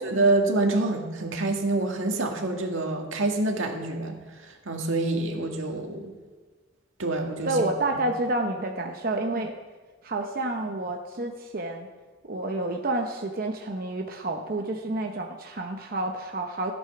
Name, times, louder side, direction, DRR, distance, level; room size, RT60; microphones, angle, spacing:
voice 1, 0.0-6.2 7.0-7.6 9.3-9.4, right 2 dB, 85° right, 2 dB, 1.8 m, -27 dB
voice 2, 7.4-9.5 10.0-11.9 12.2-16.7, right 2 dB, 45° right, 3 dB, 0.8 m, -29 dB
14.0 x 8.9 x 5.9 m, 1.3 s
head